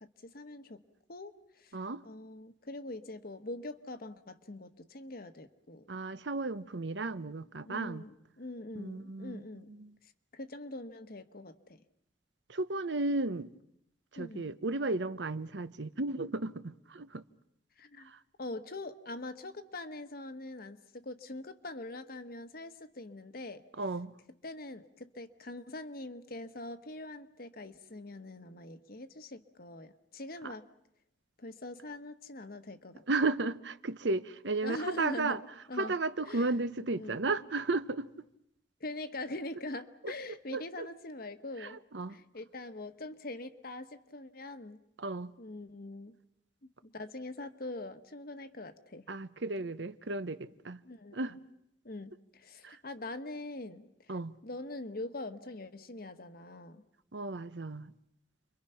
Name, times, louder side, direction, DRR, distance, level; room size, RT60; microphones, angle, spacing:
voice 1, 0.0-0.8 1.1-1.8 2.0-5.8 7.6-9.7 10.0-11.8 14.2-14.5 17.8-18.1 18.4-23.6 24.4-30.7 31.4-33.0 34.6-35.4 35.7-35.9 36.3-36.5 36.9-37.2 38.8-41.8 42.1-44.8 45.4-46.2 46.6-49.1 50.8-51.4 51.8-56.8, left 2 dB, 55° left, 1.3 m, -43 dB
voice 2, 1.7-2.0 5.9-8.1 8.7-9.4 9.7-9.9 12.5-13.5 14.1-17.2 18.0-18.2 23.8-24.1 30.4-30.5 33.1-35.4 35.8-38.1 40.0-40.1 40.5-40.9 41.6-42.2 45.0-45.3 49.1-50.8 51.1-51.3 52.6-52.8 54.1-54.3 57.1-57.9, right 3 dB, 85° right, 0.9 m, -34 dB
30.0 x 23.5 x 5.8 m
head